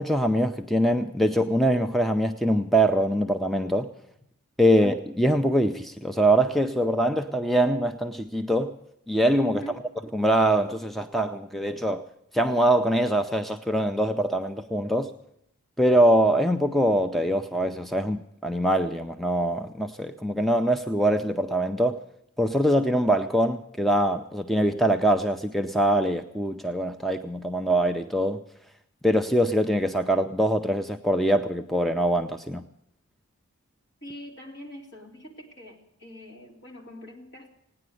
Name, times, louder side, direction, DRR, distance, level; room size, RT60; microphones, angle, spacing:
voice 1, 0.0-3.9 4.6-8.8 9.1-9.6 10.1-12.0 12.3-15.1 15.8-22.0 22.4-28.4 29.0-32.6, right 1 dB, ahead, 7 dB, 0.5 m, -23 dB
voice 2, 9.4-9.8 34.0-37.5, equal, 55° left, 2 dB, 2.9 m, -42 dB
17.5 x 9.8 x 7.7 m, 0.77 s
head